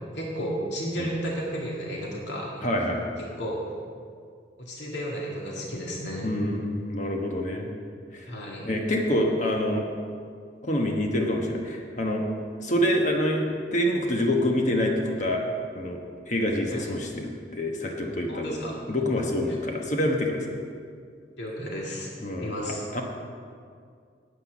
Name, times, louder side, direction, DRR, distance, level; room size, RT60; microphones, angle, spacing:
voice 1, 0.1-2.6 3.4-3.6 4.6-6.3 8.3-8.7 16.7-16.9 18.3-18.7 21.4-22.1 22.4-22.8, equal, 80° left, -3 dB, 2.0 m, -33 dB
voice 2, 2.6-3.1 6.2-7.7 8.1-8.3 8.6-9.9 10.6-12.2 12.6-15.4 15.7-18.5 18.9-20.5 22.2-22.5 22.9-23.0, left 1 dB, 45° left, 1 dB, 1.1 m, -26 dB
10.0 x 9.0 x 6.1 m, 2.2 s
head